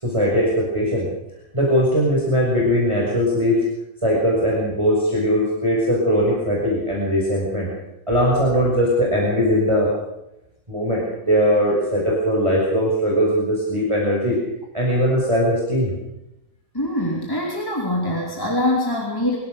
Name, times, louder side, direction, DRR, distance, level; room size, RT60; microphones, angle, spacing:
voice 1, 0.0-1.1 1.5-3.6 4.0-7.7 8.1-9.9 10.7-14.4 14.7-16.0, equal, 15° right, -4 dB, 6.1 m, -20 dB
voice 2, 16.7-19.4, left 1 dB, 10° left, -2 dB, 3.3 m, -23 dB
24.5 x 16.5 x 6.7 m, 0.89 s
omnidirectional pair, 2.0 m